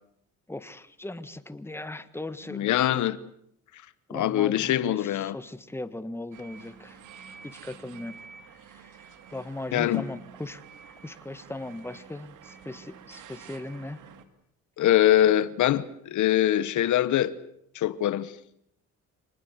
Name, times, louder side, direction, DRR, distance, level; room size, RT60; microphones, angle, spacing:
voice 1, 0.5-2.8 4.1-7.0 7.4-8.1 8.5-10.6 11.0-14.0, left 2 dB, 10° left, 1.6 m, -38 dB
voice 2, 2.5-3.2 4.1-5.4 9.7-10.0 14.8-17.4 17.7-18.3, left 12 dB, 75° left, 1.1 m, -23 dB
sound 1, 6.3-14.2, right 7 dB, 85° right, 2.5 m, -49 dB
26.0 x 20.0 x 8.1 m
cardioid pair, 90°, 30 cm